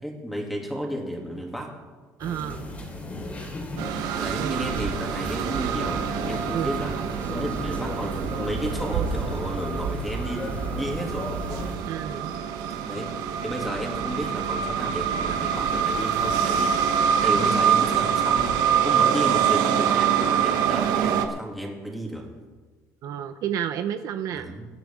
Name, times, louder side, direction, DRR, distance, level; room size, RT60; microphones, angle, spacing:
voice 1, 0.0-1.7 4.2-6.9 7.3-11.3 12.8-13.1 13.4-18.5 18.8-22.3 24.3-24.7, equal, ahead, -1 dB, 2.8 m, -33 dB
sound 1, 2.2-11.8, left 1 dB, 20° left, 3.0 m, -36 dB
voice 2, 2.2-2.7 4.4-4.7 6.5-6.7 11.9-12.3 23.0-24.5, right 10 dB, 55° right, 9 dB, 0.7 m, -31 dB
sound 2, 3.8-21.3, right 8 dB, 75° right, 1.2 m, -25 dB
23.0 x 10.0 x 3.7 m, 1.4 s
cardioid pair, 135°, 7 cm